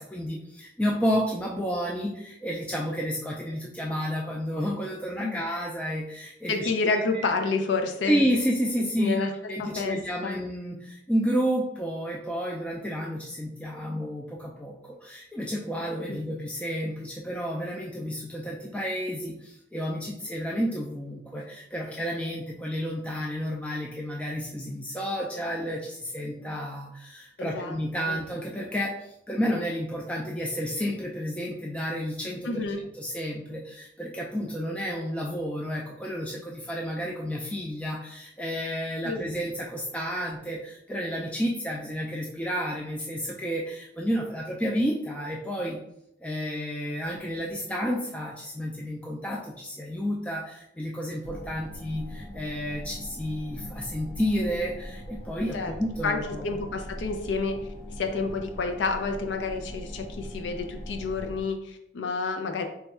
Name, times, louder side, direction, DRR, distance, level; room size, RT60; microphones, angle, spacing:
voice 1, 0.0-7.3 8.1-32.6 33.0-45.8 46.2-56.4, equal, 5° left, -2 dB, 0.3 m, -31 dB
voice 2, 6.5-8.2 9.0-9.3 9.6-10.4 16.1-16.2 27.4-27.8 28.1-28.2 32.5-32.8 39.0-39.2 55.5-55.7 56.0-57.6 58.0-62.7, left 4 dB, 75° left, 5 dB, 0.4 m, -29 dB
sound 1, 51.2-61.4, equal, 30° left, 1.4 m, -41 dB
3.4 x 2.3 x 4.1 m, 0.79 s
head